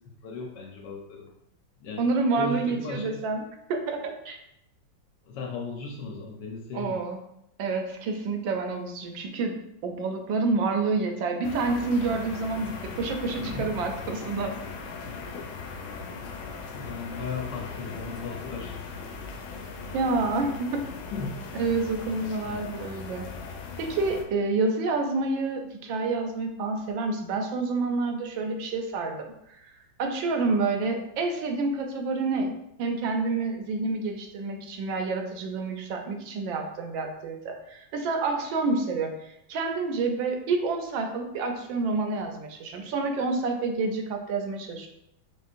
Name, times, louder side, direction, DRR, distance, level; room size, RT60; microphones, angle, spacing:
voice 1, 0.0-1.3 1.8-2.1 2.4-3.2 5.2-7.0 13.4-13.7 16.3-19.1 21.1-21.4 22.4-22.6, left 3 dB, 70° left, 1 dB, 1.3 m, -37 dB
voice 2, 2.0-3.4 3.7-4.4 6.7-7.2 7.6-9.5 9.8-14.5 19.9-20.8 21.5-23.2 23.8-29.3 30.0-32.5 32.8-44.9, right 3 dB, 80° right, 4 dB, 1.3 m, -28 dB
sound 1, 11.4-24.2, left 5 dB, 85° left, 1.4 m, -39 dB
4.4 x 3.5 x 2.5 m, 0.78 s
omnidirectional pair, 2.1 m